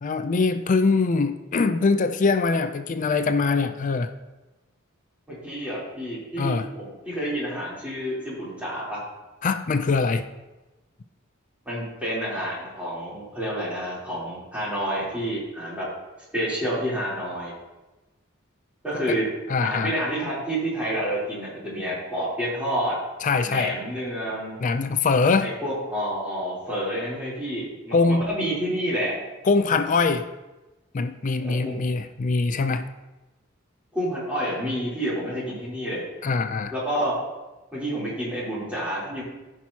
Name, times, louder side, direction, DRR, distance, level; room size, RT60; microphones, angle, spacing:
voice 1, 0.0-4.1 6.4-6.7 9.4-10.2 19.5-20.0 23.2-23.8 24.6-25.5 27.9-28.3 29.5-30.3 30.9-32.9 36.2-36.7, left 4 dB, 40° left, 9 dB, 0.4 m, -23 dB
voice 2, 5.3-9.0 11.6-15.9 16.3-17.5 18.8-19.3 19.6-23.0 23.4-24.6 25.4-29.2 31.4-31.8 33.9-36.0 36.7-37.2 37.7-39.2, equal, 5° right, -8 dB, 3.4 m, -29 dB
14.5 x 6.0 x 2.8 m, 1.1 s
head